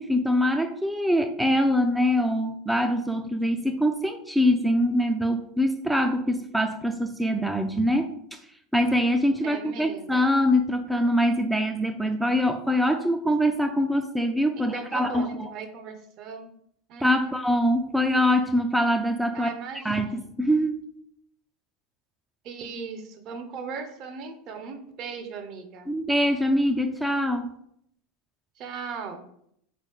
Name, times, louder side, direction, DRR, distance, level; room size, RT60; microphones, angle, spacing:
voice 1, 0.0-8.4 8.7-15.5 17.0-19.5 19.7-20.8 25.9-27.5, equal, 5° right, 5 dB, 0.3 m, -24 dB
voice 2, 9.4-10.1 14.5-16.5 16.9-17.3 19.3-20.3 22.4-25.9 28.6-29.3, right 5 dB, 50° right, 7 dB, 0.6 m, -38 dB
3.9 x 3.1 x 3.3 m, 0.71 s
hypercardioid pair, 85°, 0 cm